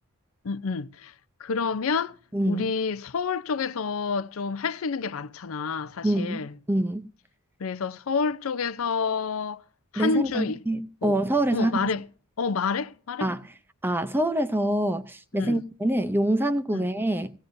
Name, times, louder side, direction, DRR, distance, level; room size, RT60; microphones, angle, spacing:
voice 1, 0.4-1.1 1.4-2.2 2.5-6.5 7.6-9.6 9.9-10.6 11.0-11.2 11.5-12.0 12.4-13.3 15.3-15.6 16.7-16.8, left 5 dB, 65° left, 0.5 m, -28 dB
voice 2, 2.3-2.7 6.0-6.4 6.7-7.0 9.9-11.9 13.2-13.4 13.8-17.3, right 1 dB, 10° right, 0.6 m, -25 dB
17.0 x 16.5 x 2.6 m
head